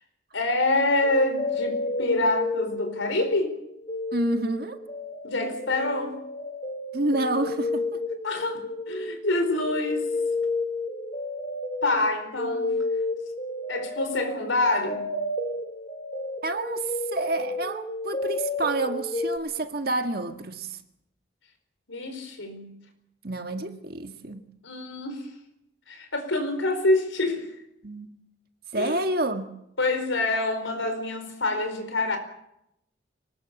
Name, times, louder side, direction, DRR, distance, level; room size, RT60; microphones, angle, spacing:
voice 1, 0.3-3.6 5.2-6.2 8.2-10.1 11.8-12.7 13.7-15.1 21.9-22.7 24.6-25.3 25.9-27.5 28.8-29.0 29.8-32.2, left 2 dB, 80° left, 4.7 m, -26 dB
sound 1, 1.0-3.4 3.6-19.4, left 2 dB, 30° left, 3.0 m, -31 dB
voice 2, 4.1-4.8 6.9-8.0 16.4-20.8 23.2-24.4 27.8-28.1 28.7-29.5, right 2 dB, 50° right, 1.8 m, -29 dB
24.5 x 19.5 x 7.2 m
head